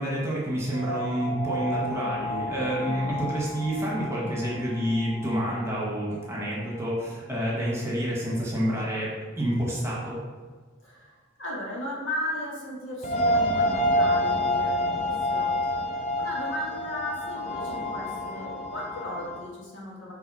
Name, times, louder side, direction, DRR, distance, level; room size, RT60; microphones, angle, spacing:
voice 1, 0.0-10.2, equal, 15° right, -5 dB, 1.5 m, -28 dB
sound 1, 0.7-6.3 6.7-6.8 13.0-19.4, left 1 dB, 35° left, 0.6 m, -29 dB
voice 2, 2.7-3.0 10.8-15.5 16.1-20.1, left 1 dB, 70° left, -4 dB, 1.9 m, -36 dB
5.8 x 4.1 x 5.6 m, 1.4 s
head